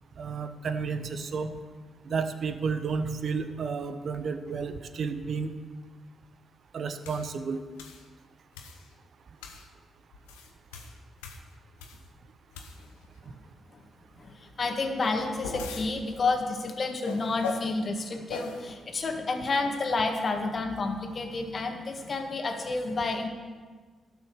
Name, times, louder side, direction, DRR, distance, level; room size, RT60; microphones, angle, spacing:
voice 1, 0.2-1.5 2.0-5.5 6.7-7.6, right 5 dB, 60° right, 10 dB, 0.9 m, -31 dB
sound 1, 7.0-7.3 7.8-8.0 8.5-8.9 9.4-9.7 10.1-12.1 12.5-13.0 15.0-15.9 17.0-17.7 18.3-18.6, left 4 dB, 90° left, 0.9 m, -39 dB
voice 2, 14.2-23.3, left 3 dB, 50° left, 4 dB, 1.6 m, -30 dB
12.5 x 6.2 x 6.8 m, 1.4 s
hypercardioid pair, 45°, 0 cm